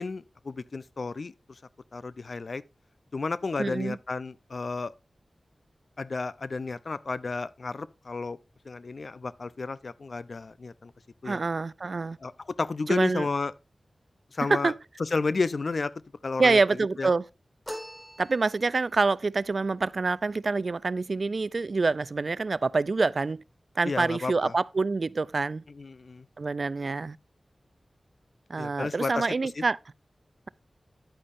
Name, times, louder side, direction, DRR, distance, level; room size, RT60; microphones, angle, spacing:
voice 1, 0.0-1.3 1.9-2.6 3.1-4.9 6.0-8.4 8.7-10.9 11.2-11.4 12.2-12.3 12.6-13.5 14.3-14.7 15.0-15.9 16.2-16.6 17.0-17.1 23.8-24.5 25.8-26.3 28.6-29.3 29.6-29.7, left 3 dB, 65° left, 0.5 m, -32 dB
voice 2, 3.6-4.0 11.2-12.2 12.9-13.3 14.5-14.7 16.4-17.2 18.2-23.4 23.8-25.6 26.4-27.2 28.5-29.8, right 3 dB, 65° right, 0.4 m, -26 dB
sound 1, 17.7-18.9, equal, 15° left, 1.6 m, -41 dB
10.0 x 8.6 x 2.6 m
cardioid pair, 45°, 0 cm